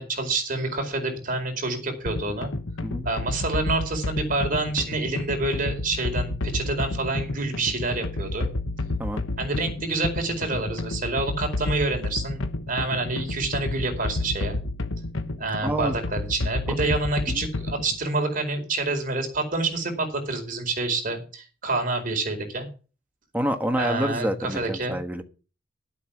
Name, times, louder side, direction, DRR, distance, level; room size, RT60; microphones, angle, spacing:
voice 1, 0.0-2.5 3.0-8.5 9.4-14.6 15.4-22.7 23.8-25.0, right 2 dB, 45° right, 4.5 m, -27 dB
sound 1, 2.1-18.0, left 2 dB, 90° left, 1.2 m, -31 dB
voice 2, 15.6-16.0 17.3-17.5 23.3-25.2, right 1 dB, 10° right, 1.4 m, -27 dB
12.0 x 8.3 x 6.1 m
head